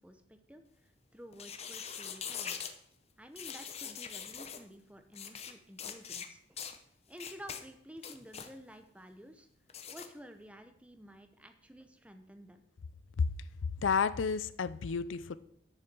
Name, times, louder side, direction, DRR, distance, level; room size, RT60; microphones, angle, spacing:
voice 1, 0.0-2.6 3.2-6.6 7.1-9.5 9.9-12.6, equal, 5° right, 8 dB, 0.8 m, -52 dB
sound 1, 1.3-2.7 3.4-4.6 5.1-5.5 5.8-6.3 6.6-6.8 7.2-7.6 8.0-8.5 9.7-10.1, left 7 dB, 30° left, 0.8 m, -42 dB
voice 2, 13.8-15.3, left 5 dB, 85° left, 15 dB, 0.5 m, -30 dB
10.0 x 6.6 x 6.1 m, 0.71 s
head